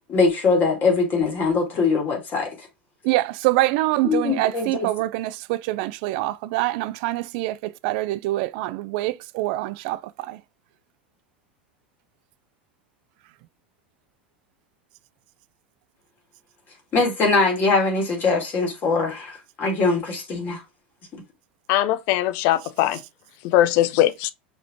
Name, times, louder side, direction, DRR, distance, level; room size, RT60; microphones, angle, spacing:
voice 1, 0.1-2.7 4.0-4.9 16.9-20.6, left 4 dB, 35° left, 2.6 m, -22 dB
voice 2, 3.0-10.4 22.9-23.0, right 17 dB, 55° right, 0.4 m, -25 dB
voice 3, 21.7-23.0 23.5-24.3, left 13 dB, 50° left, 0.5 m, -20 dB
6.1 x 3.0 x 2.6 m
hypercardioid pair, 85°, 6 cm